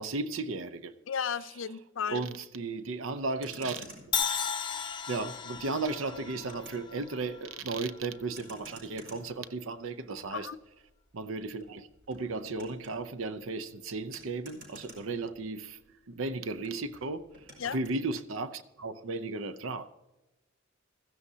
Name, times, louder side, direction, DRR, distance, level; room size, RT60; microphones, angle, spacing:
voice 1, 0.0-0.9 2.1-3.9 5.1-10.5 11.1-15.8 16.1-17.4 17.7-19.9, right 3 dB, 80° right, 0.7 m, -35 dB
voice 2, 1.1-2.3 10.3-10.6 17.6-17.8, left 7 dB, 70° left, 0.5 m, -34 dB
Motor vehicle (road), 3.3-15.8 16.1-18.0, right 1 dB, 55° right, 4.6 m, -53 dB
Crash cymbal, 4.1-8.2, left 7 dB, 25° left, 0.7 m, -35 dB
16.0 x 14.5 x 2.8 m
head